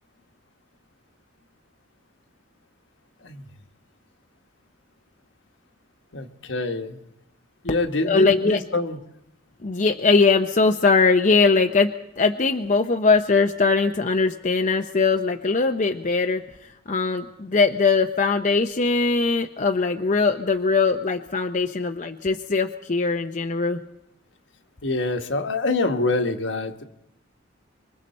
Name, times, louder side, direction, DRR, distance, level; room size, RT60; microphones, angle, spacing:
voice 1, 6.1-7.0 7.6-9.0 24.8-26.8, left 2 dB, 65° left, 6 dB, 1.4 m, -25 dB
voice 2, 8.0-8.6 9.6-16.4 16.9-23.8, left 4 dB, 40° left, 5 dB, 0.7 m, -21 dB
25.5 x 24.0 x 4.3 m, 0.80 s
head